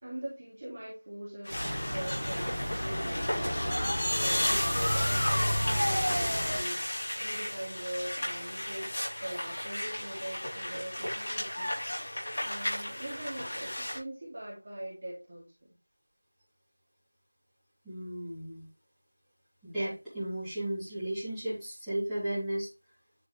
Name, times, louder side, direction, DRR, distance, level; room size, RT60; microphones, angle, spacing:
voice 1, 0.0-3.7 4.2-6.8 7.2-8.9 9.2-11.7 12.4-15.7, right 1 dB, 25° right, -6 dB, 2.8 m, -41 dB
sound 1, 1.4-14.0, left 1 dB, 35° left, 4.7 m, -34 dB
sound 2, 1.5-6.6, equal, 15° left, 4.1 m, -31 dB
voice 2, 17.8-18.6 19.6-22.7, right 1 dB, ahead, -22 dB, 3.4 m, -34 dB
10.5 x 5.2 x 3.5 m, 0.26 s
figure-of-eight pair, 175°, 0 cm